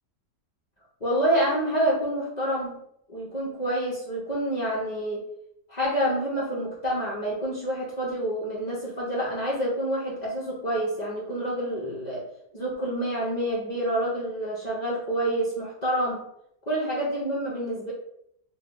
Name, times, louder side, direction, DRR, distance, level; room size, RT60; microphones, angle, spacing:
voice 1, 1.0-2.8 3.1-5.3 5.7-12.3 12.5-16.2 16.7-17.9, right 1 dB, 50° left, -5 dB, 0.5 m, -27 dB
3.0 x 2.2 x 3.7 m, 0.74 s
omnidirectional pair, 1.8 m